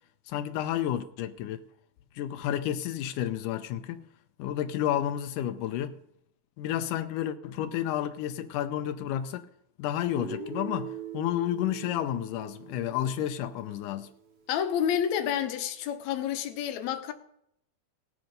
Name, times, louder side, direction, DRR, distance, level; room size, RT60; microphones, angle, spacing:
voice 1, 0.3-1.6 2.2-4.0 4.4-6.0 6.6-9.5 9.8-14.1, left 11 dB, 90° left, 2.2 m, -31 dB
Guitar, 10.2-14.1, right 7 dB, 65° right, 3.1 m, -42 dB
voice 2, 14.5-17.1, left 9 dB, 70° left, 2.2 m, -29 dB
18.0 x 7.9 x 5.3 m
omnidirectional pair, 3.6 m